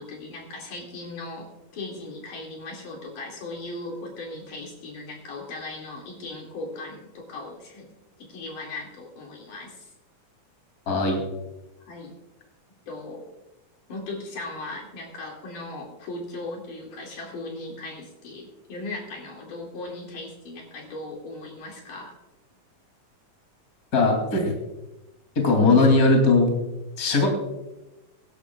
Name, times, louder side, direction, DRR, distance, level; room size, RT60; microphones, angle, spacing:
voice 1, 0.0-7.9 8.2-9.9 11.9-12.1 12.9-13.3 13.9-22.2, left 2 dB, 65° left, -1 dB, 3.8 m, -38 dB
voice 2, 10.9-11.2 23.9-24.5 25.4-26.5 27.0-27.3, left 3 dB, 30° left, 2 dB, 3.0 m, -19 dB
23.0 x 11.5 x 2.4 m, 0.98 s
omnidirectional pair, 3.9 m